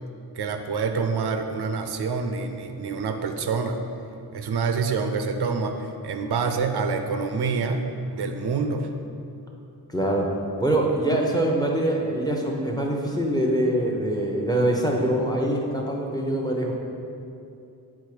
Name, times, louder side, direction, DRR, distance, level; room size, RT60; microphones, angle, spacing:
voice 1, 0.3-3.8 4.3-7.8 8.1-8.9, right 4 dB, 75° right, 6 dB, 0.6 m, -27 dB
voice 2, 9.9-10.3 10.6-16.7, right 1 dB, 10° left, -1 dB, 0.7 m, -24 dB
8.1 x 3.7 x 4.9 m, 2.7 s
wide cardioid pair, 125°, 40 cm